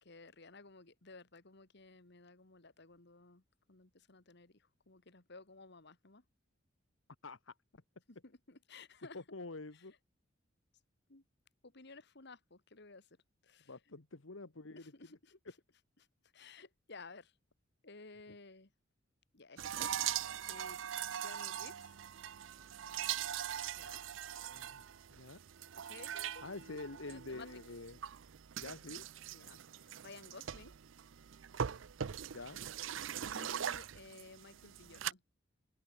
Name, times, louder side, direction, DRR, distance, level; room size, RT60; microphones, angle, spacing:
voice 1, 0.0-3.4 3.7-6.2 8.1-9.2 9.7-9.8 11.1-11.2 11.6-13.1 13.4-14.0 14.8-15.4 16.3-17.3 17.8-18.7 19.3-20.0 20.5-20.8 21.2-21.8 23.8-24.0 25.9-26.4 27.1-27.6 29.3-30.7 33.2-35.2, left 3 dB, 60° left, 2.1 m, -55 dB
voice 2, 7.2-7.5 9.1-9.9 13.7-14.8 24.5-24.8 25.1-25.4 26.4-28.0 28.6-29.0 32.3-32.6, left 3 dB, 80° left, 1.5 m, -47 dB
sound 1, 19.6-35.1, right 9 dB, 75° right, 0.5 m, -42 dB
open air
head